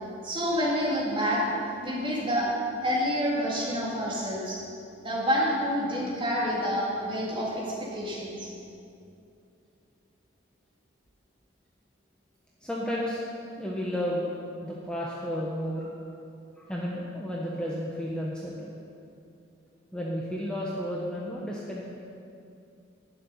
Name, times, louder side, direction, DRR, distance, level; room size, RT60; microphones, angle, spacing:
voice 1, 0.2-1.4 1.8-2.5 2.8-4.6 5.0-8.5, equal, 25° right, -6 dB, 3.6 m, -28 dB
voice 2, 12.6-13.2 13.6-14.3 14.6-15.9 16.6-18.7 19.9-21.8, equal, 5° left, -5 dB, 1.2 m, -32 dB
12.0 x 7.7 x 9.7 m, 2.6 s
head